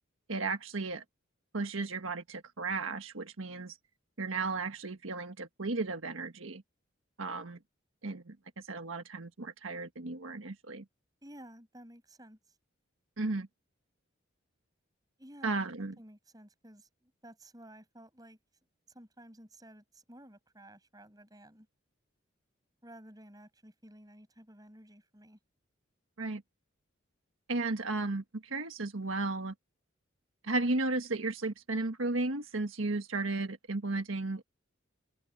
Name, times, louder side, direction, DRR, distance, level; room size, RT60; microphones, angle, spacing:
voice 1, 0.3-1.0 1.5-3.8 4.2-6.6 7.2-7.6 8.0-10.8 13.2-13.5 15.4-15.9 26.2-26.4 27.5-29.5 30.4-34.4, right 3 dB, 85° right, 1.5 m, -34 dB
voice 2, 11.2-12.4 15.2-18.4 18.9-21.7 22.8-25.4, right 1 dB, 20° right, 7.3 m, -54 dB
head